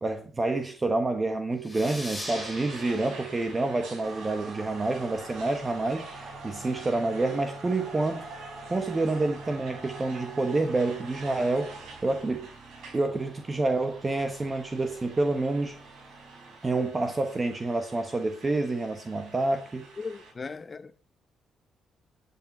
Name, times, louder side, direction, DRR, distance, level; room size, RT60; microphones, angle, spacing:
voice 1, 0.0-8.3 8.7-11.7 12.0-12.5 12.9-15.8 16.6-19.8, right 2 dB, 25° right, 1.2 m, -28 dB
sound 1, 1.6-4.9, left 1 dB, 10° left, 5.4 m, -42 dB
sound 2, 1.7-20.3, right 3 dB, 80° right, 4.9 m, -48 dB
sound 3, 4.0-16.6, right 3 dB, 40° right, 1.9 m, -45 dB
voice 2, 20.0-21.0, left 4 dB, 30° left, 0.9 m, -38 dB
12.0 x 8.6 x 4.4 m
cardioid pair, 90°, 0 cm